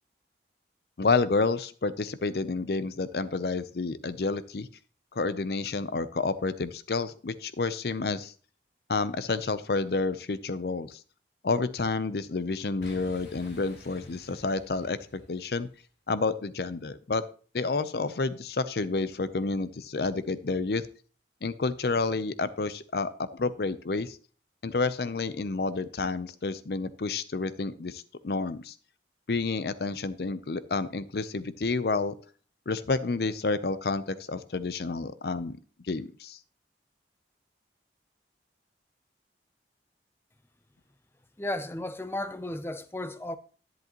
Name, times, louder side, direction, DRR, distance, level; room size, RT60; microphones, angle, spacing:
voice 1, 1.0-4.7 5.1-8.3 8.9-11.0 11.4-15.7 16.1-17.2 17.5-20.8 21.4-24.2 24.6-28.7 29.3-32.1 32.7-35.6 35.9-36.4, left 3 dB, 60° left, 0.6 m, -29 dB
Boom, 12.8-15.8, equal, 75° left, 3.8 m, -49 dB
voice 2, 41.4-43.4, left 1 dB, 15° left, 0.5 m, -34 dB
10.5 x 10.5 x 3.0 m
head